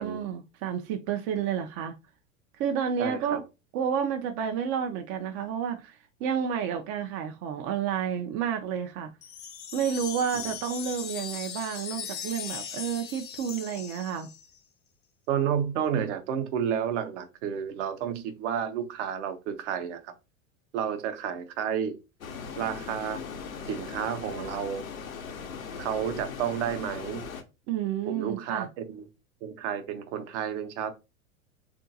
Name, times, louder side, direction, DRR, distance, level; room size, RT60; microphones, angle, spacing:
voice 1, 0.0-1.9 2.6-3.4 3.7-6.0 6.2-9.1 9.7-14.3 27.7-28.7, right 8 dB, 35° right, 0.5 m, -30 dB
voice 2, 3.0-3.4 15.3-20.1 20.7-22.0 22.6-23.2 23.7-24.9 25.8-27.3 28.1-29.1 29.4-30.9, right 8 dB, 60° right, 0.8 m, -31 dB
sound 1, 9.2-14.6, left 8 dB, 25° left, 0.5 m, -39 dB
sound 2, 22.2-27.4, left 6 dB, 85° left, 0.7 m, -39 dB
3.6 x 2.5 x 2.7 m
hypercardioid pair, 90°, 41 cm